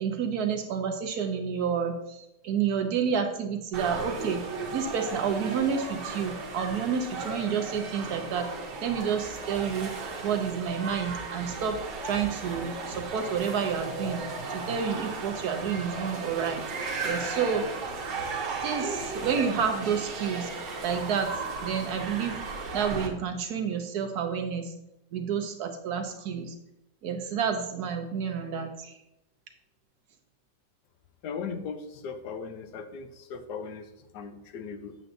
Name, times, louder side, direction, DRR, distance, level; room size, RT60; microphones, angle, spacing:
voice 1, 0.0-4.4 4.7-8.5 8.8-9.9 10.2-11.8 12.0-14.2 14.5-17.7 18.6-21.3 21.6-22.4 22.7-24.7 25.1-26.5 27.0-29.0, right 7 dB, 70° right, 5 dB, 1.3 m, -29 dB
sound 1, 3.7-23.1, right 3 dB, 85° right, 1.8 m, -35 dB
voice 2, 31.2-35.0, left 5 dB, 80° left, 8 dB, 1.3 m, -38 dB
7.9 x 7.5 x 2.6 m, 0.84 s
omnidirectional pair, 1.8 m